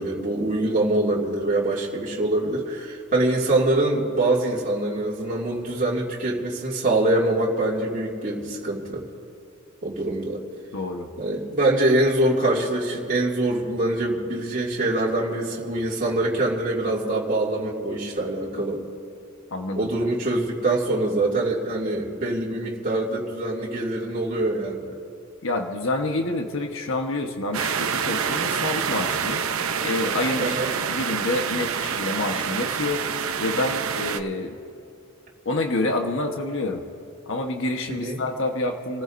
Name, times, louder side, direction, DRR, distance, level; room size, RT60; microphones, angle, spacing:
voice 1, 0.0-9.0 9.8-10.4 11.2-18.8 19.8-25.0 30.4-30.7 37.9-38.2, right 2 dB, 40° right, -6 dB, 2.5 m, -24 dB
voice 2, 10.7-11.1 19.5-19.9 25.4-29.4 29.8-33.1 33.4-34.6 35.4-36.8 37.3-39.0, left 2 dB, 65° left, 3 dB, 1.2 m, -27 dB
sound 1, 27.5-34.2, right 7 dB, 80° right, 0.8 m, -27 dB
29.5 x 15.0 x 2.6 m, 2.7 s
head